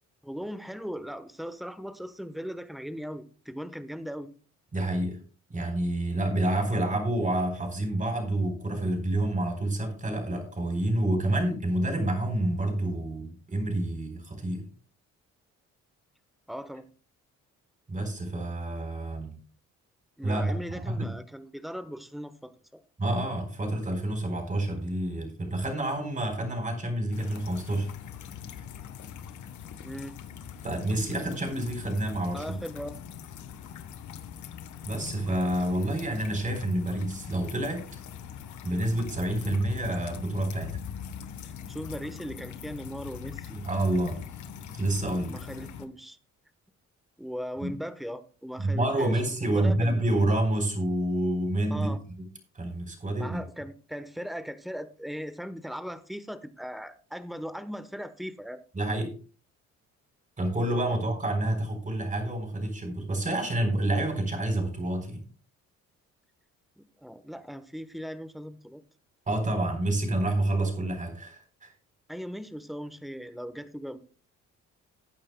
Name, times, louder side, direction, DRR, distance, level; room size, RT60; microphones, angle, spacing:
voice 1, 0.2-4.3 16.5-16.9 20.2-22.8 29.8-30.2 32.3-33.0 41.4-43.6 45.3-46.2 47.2-50.0 51.7-52.0 53.2-58.6 66.8-68.8 72.1-74.0, equal, ahead, 12 dB, 1.0 m, -38 dB
voice 2, 4.7-5.2 5.5-14.7 17.9-19.4 20.2-21.1 23.0-27.9 30.6-32.4 34.8-37.9 38.6-40.8 43.5-44.2 44.7-45.4 47.6-47.7 48.6-51.9 52.2-52.3 52.6-53.4 58.7-59.1 60.4-65.2 69.3-71.7, right 1 dB, 25° right, 5 dB, 3.9 m, -28 dB
sound 1, 27.1-45.8, left 8 dB, 75° left, 1.2 m, -42 dB
19.0 x 8.8 x 2.2 m, 0.38 s
cardioid pair, 90°, 30 cm